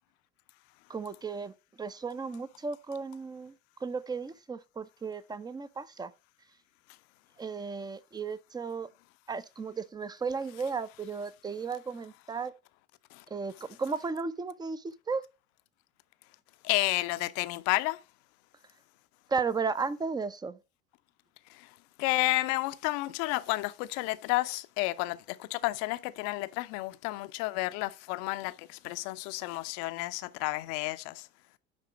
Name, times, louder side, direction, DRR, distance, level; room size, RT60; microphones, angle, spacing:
voice 1, 0.9-1.5 1.8-3.5 3.8-6.1 7.4-8.9 9.3-12.5 13.3-13.5 13.8-15.2 19.3-20.6, right 5 dB, 10° right, 0.6 m, -34 dB
voice 2, 16.6-18.0 21.5-21.7 22.0-31.3, left 19 dB, 50° left, 0.6 m, -31 dB
9.6 x 3.7 x 4.9 m
figure-of-eight pair, 75°, 32 cm